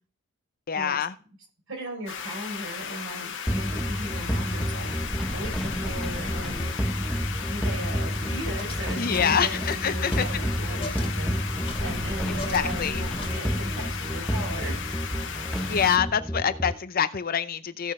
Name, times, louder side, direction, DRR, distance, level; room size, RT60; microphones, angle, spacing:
voice 1, 0.7-1.1 9.0-10.3 12.3-13.0 15.7-17.9, left 7 dB, 45° left, 13 dB, 0.6 m, -26 dB
voice 2, 1.7-4.9 5.3-6.8 7.5-14.8, right 1 dB, 65° right, 1 dB, 4.9 m, -37 dB
sound 1, 2.1-16.0, left 7 dB, 60° left, 1.6 m, -36 dB
sound 2, 3.5-16.8, equal, 5° left, 0.8 m, -30 dB
sound 3, 7.7-12.9 13.2-13.8, left 3 dB, 25° left, 2.1 m, -43 dB
16.0 x 6.3 x 3.7 m, 0.38 s
head